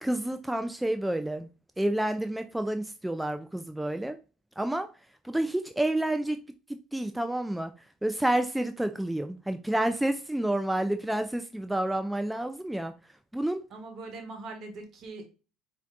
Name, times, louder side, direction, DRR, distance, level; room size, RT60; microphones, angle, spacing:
voice 1, 0.0-1.5 1.8-4.2 4.6-4.9 5.2-6.4 6.7-7.7 8.0-12.9 13.3-13.6, right 1 dB, 5° right, 0.3 m, -29 dB
voice 2, 13.7-15.2, right 3 dB, 55° right, 1.1 m, -41 dB
4.3 x 2.7 x 2.4 m
hypercardioid pair, 75°, 0 cm